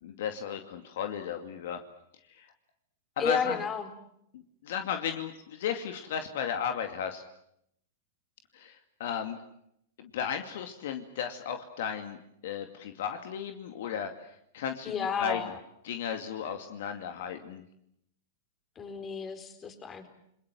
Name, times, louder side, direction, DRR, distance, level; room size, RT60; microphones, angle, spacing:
voice 1, 0.0-1.8 2.3-2.5 3.2-3.6 4.3-7.2 8.5-9.4 10.0-14.3 14.5-15.5 15.8-17.6, left 8 dB, 65° left, 6 dB, 2.4 m, -35 dB
voice 2, 3.2-3.9 14.9-15.6 18.8-20.1, left 6 dB, 25° left, 8 dB, 4.3 m, -32 dB
29.5 x 21.5 x 7.7 m, 0.74 s
hypercardioid pair, 115°, 0 cm